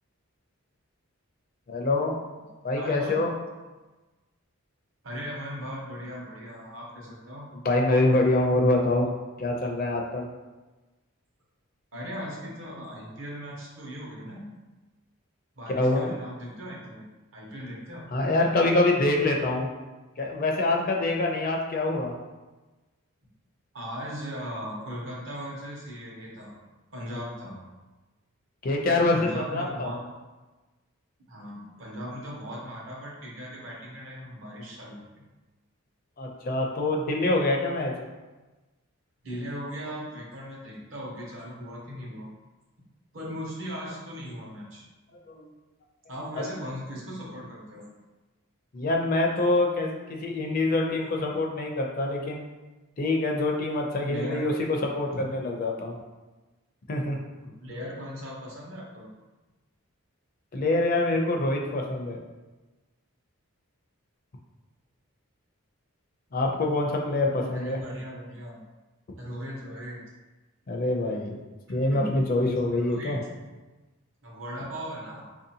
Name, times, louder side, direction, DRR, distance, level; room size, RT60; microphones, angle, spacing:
voice 1, 1.7-2.2 2.6-3.3 7.6-9.1 9.4-10.3 15.7-16.2 18.1-19.7 20.2-22.1 28.6-29.9 36.2-37.9 45.3-45.5 48.7-52.5 53.0-56.0 56.9-57.2 60.5-62.2 66.3-67.8 70.7-71.4 71.7-73.2, left 2 dB, 40° left, 1 dB, 0.4 m, -25 dB
voice 2, 2.8-3.2 5.0-7.5 11.9-14.4 15.6-17.0 17.3-18.1 23.7-26.5 26.9-27.6 29.1-30.0 31.3-35.0 39.2-42.3 43.1-44.8 46.1-47.8 54.1-54.4 55.1-55.2 57.6-59.1 67.5-68.6 69.2-70.0 71.9-72.1 72.8-73.2 74.2-75.3, equal, 60° right, -3 dB, 0.9 m, -38 dB
4.1 x 2.7 x 2.7 m, 1.2 s
head